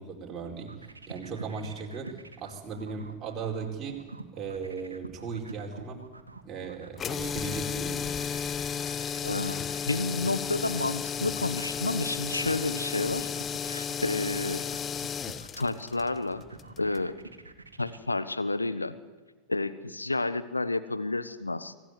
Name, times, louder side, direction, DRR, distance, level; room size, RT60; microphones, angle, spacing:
voice 1, 0.0-4.0 4.3-6.0 6.4-8.0, right 5 dB, 25° right, 0 dB, 4.6 m, -37 dB
sound 1, 0.5-18.0, right 3 dB, 80° right, 1.9 m, -47 dB
sound 2, 7.0-17.1, left 7 dB, 25° left, 0.9 m, -34 dB
voice 2, 9.2-9.6 9.9-13.3 13.6-14.6 15.6-16.4 16.8-17.1 17.8-18.9 19.5-21.8, left 2 dB, 80° left, 12 dB, 1.2 m, -30 dB
25.0 x 15.5 x 9.7 m, 1.3 s
figure-of-eight pair, 90°, 0 cm